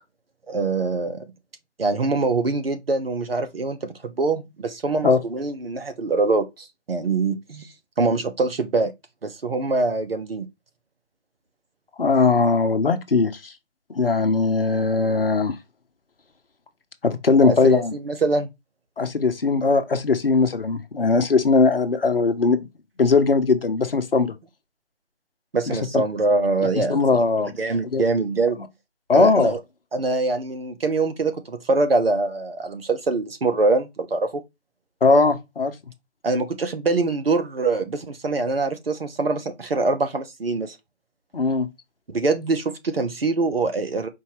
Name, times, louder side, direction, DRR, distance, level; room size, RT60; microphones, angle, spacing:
voice 1, 0.5-1.2 1.8-7.7 8.0-8.9 9.2-10.4 17.4-18.5 25.5-27.0 27.4-28.6 29.1-29.6 29.9-34.3 36.2-40.8 42.1-44.1, right 3 dB, 55° right, 0.9 m, -24 dB
voice 2, 12.0-13.5 13.9-15.6 17.0-17.9 19.0-22.7 23.0-24.3 25.7-26.0 26.8-27.5 27.9-28.0 29.1-29.5 35.0-35.7 41.3-41.7, left 4 dB, 55° left, 0.8 m, -19 dB
4.5 x 2.7 x 3.1 m
figure-of-eight pair, 160°, 35 cm